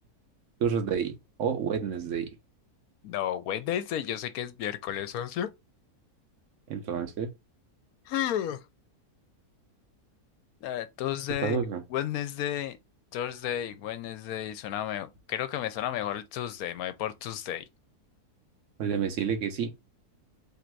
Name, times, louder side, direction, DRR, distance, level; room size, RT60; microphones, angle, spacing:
voice 1, 0.6-1.1 1.4-2.3 6.7-7.3 11.4-11.8 18.8-19.7, right 7 dB, 60° right, 1.1 m, -29 dB
voice 2, 3.0-5.5 8.1-8.6 10.6-11.6 11.9-12.8 13.1-17.7, left 11 dB, 75° left, 1.1 m, -32 dB
3.3 x 2.6 x 4.4 m
omnidirectional pair, 1.6 m